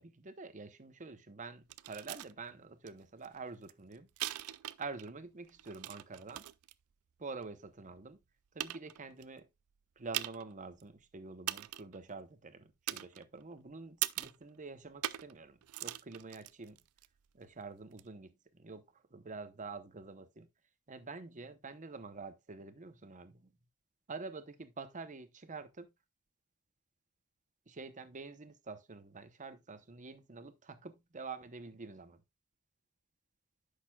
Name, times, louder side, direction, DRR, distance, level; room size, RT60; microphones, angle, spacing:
voice 1, 0.0-4.1 4.8-6.4 7.2-8.2 8.5-9.5 10.0-16.8 17.3-20.5 20.9-23.5 24.1-25.9 27.7-32.2, right 4 dB, 35° right, 0.8 m, -47 dB
sound 1, 1.7-2.3 2.9-3.0 3.2-5.1 5.4-6.7 7.4-7.5 8.1-8.2 8.6-9.2 10.1-10.5 10.8-10.9 11.5-12.0 12.9-13.5 14.0-14.4 15.0-15.4 15.6-17.1 17.9-18.0, right 15 dB, 70° right, 0.4 m, -40 dB
10.0 x 6.6 x 2.3 m
head